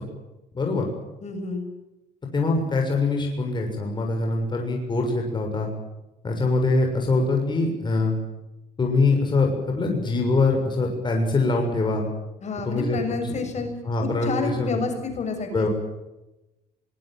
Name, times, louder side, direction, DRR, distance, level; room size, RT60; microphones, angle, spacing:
voice 1, 0.5-0.9 2.3-5.7 6.2-8.2 8.8-12.1 12.6-13.3 13.9-14.8 15.5-15.7, left 3 dB, 25° left, 1 dB, 6.7 m, -23 dB
voice 2, 1.2-1.7 12.4-13.7 14.0-15.7, left 4 dB, 45° left, 6 dB, 7.1 m, -29 dB
25.0 x 21.5 x 7.7 m, 0.98 s
cardioid pair, 110°, 17 cm